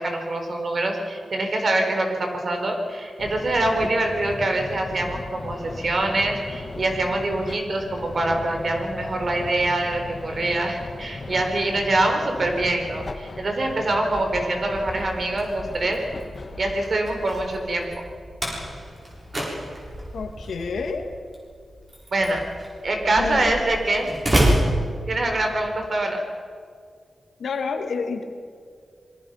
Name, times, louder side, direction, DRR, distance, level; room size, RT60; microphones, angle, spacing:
voice 1, 0.0-16.0 16.6-17.9 22.1-22.4 22.8-24.5 25.1-26.2, right 2 dB, 50° right, 3 dB, 4.6 m, -24 dB
sound 1, 3.2-16.8, left 3 dB, 40° left, 1.5 m, -37 dB
Slam, 14.8-25.6, equal, 25° right, 7.2 m, -29 dB
voice 2, 20.1-21.1 23.2-23.5 27.4-28.2, left 5 dB, 85° left, 5 dB, 2.3 m, -29 dB
26.5 x 22.5 x 5.9 m, 2.1 s
wide cardioid pair, 100°, 0 cm